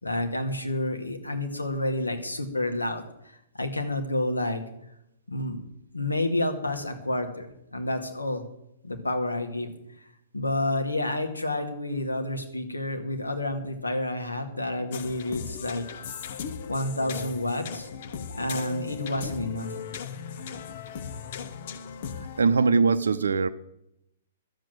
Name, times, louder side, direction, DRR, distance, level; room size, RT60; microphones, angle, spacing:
voice 1, 0.0-4.6 5.3-5.6 5.9-8.4 8.8-9.7 10.3-15.9 16.7-17.9 18.3-19.7, left 1 dB, 80° left, 5 dB, 2.0 m, -29 dB
sound 1, 14.9-22.4, left 7 dB, 45° left, 0.8 m, -37 dB
voice 2, 22.4-23.5, right 4 dB, 65° right, 9 dB, 0.6 m, -21 dB
12.0 x 7.6 x 8.9 m, 0.81 s
figure-of-eight pair, 115°, 0 cm